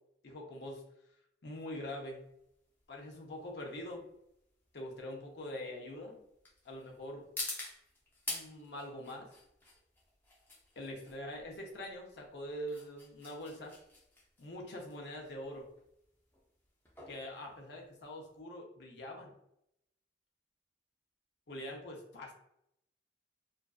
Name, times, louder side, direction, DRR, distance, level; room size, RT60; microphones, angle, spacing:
voice 1, 0.2-0.8 1.4-2.2 2.9-4.0 4.7-6.2 6.6-7.3 8.3-9.3 10.8-13.7 14.4-15.7 17.1-19.3 21.5-22.3, left 1 dB, 70° left, 0 dB, 0.6 m, -44 dB
sound 1, 1.7-18.4, left 2 dB, 10° left, 0.4 m, -48 dB
2.4 x 2.3 x 2.3 m, 0.79 s
head